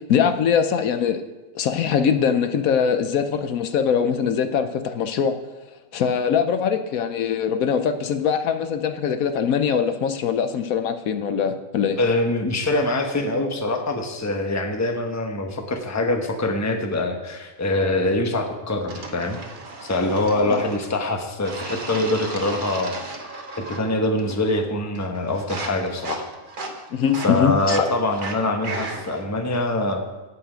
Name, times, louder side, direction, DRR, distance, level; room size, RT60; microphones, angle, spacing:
voice 1, 0.1-1.2 1.5-5.4 5.9-12.0 20.4-20.6 26.9-27.9, left 7 dB, 75° left, 8 dB, 1.1 m, -22 dB
voice 2, 12.0-19.4 19.9-23.0 23.6-26.2 27.2-30.0, left 2 dB, 15° left, 4 dB, 0.9 m, -24 dB
sound 1, 18.9-20.9 21.5-23.9 24.2-24.6 25.0-29.2, right 3 dB, 40° right, 1.2 m, -35 dB
17.0 x 5.8 x 5.0 m, 1.1 s
omnidirectional pair, 1.5 m